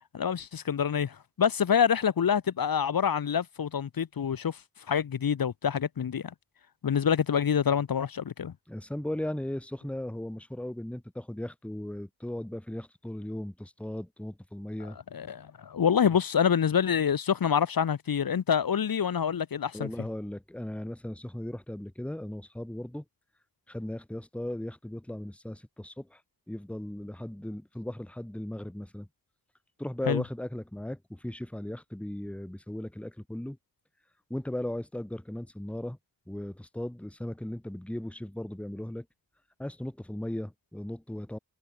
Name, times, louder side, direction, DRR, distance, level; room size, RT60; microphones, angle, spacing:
voice 1, 0.1-4.6 4.9-6.3 6.8-8.5 15.1-19.9 30.1-30.2, left 7 dB, 65° left, 1.3 m, -26 dB
voice 2, 8.7-15.0 19.7-23.0 23.7-26.2 26.5-29.1 29.8-33.6 34.3-36.0 36.3-39.0 39.6-41.4, left 1 dB, 5° left, 1.4 m, -37 dB
cardioid pair, 65°, 38 cm